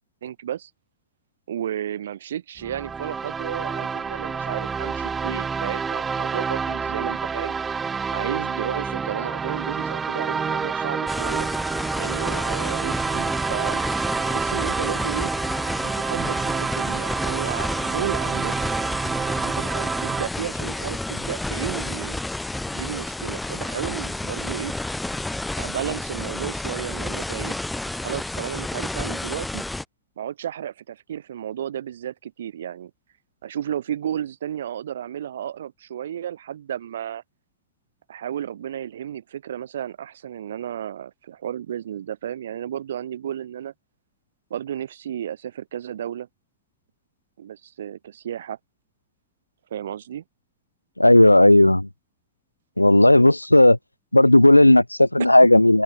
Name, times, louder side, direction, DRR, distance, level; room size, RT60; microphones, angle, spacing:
voice 1, 0.2-0.7 1.5-7.5 8.1-11.5 12.0-13.8 14.3-15.3 15.8-18.5 19.3-22.2 22.7-24.7 25.6-27.6 27.9-29.6 30.2-32.9 33.4-37.2 38.1-43.7 44.5-46.3 47.4-48.6 49.7-50.2, right 10 dB, 65° right, 7.5 m, -33 dB
sound 1, 2.6-20.3, right 5 dB, 15° right, 5.6 m, -28 dB
sound 2, 11.1-29.8, left 2 dB, 5° left, 1.0 m, -30 dB
voice 2, 51.0-51.9 52.8-53.8 54.1-55.8, left 1 dB, 85° left, 0.9 m, -14 dB
open air
figure-of-eight pair, 90°, 0 cm